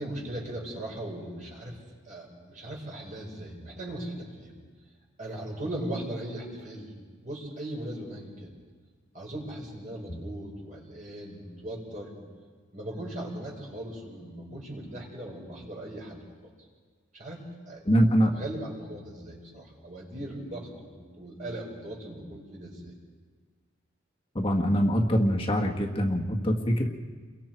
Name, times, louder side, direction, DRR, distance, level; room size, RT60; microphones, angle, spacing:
voice 1, 0.0-1.8 2.1-4.5 5.2-6.9 7.2-8.5 9.1-12.1 12.7-16.2 16.4-16.5 17.1-22.9, right 1 dB, 40° right, -2 dB, 5.2 m, -38 dB
voice 2, 17.8-18.3 24.3-26.9, equal, 30° left, 1 dB, 1.6 m, -24 dB
29.5 x 22.5 x 4.5 m, 1.5 s
head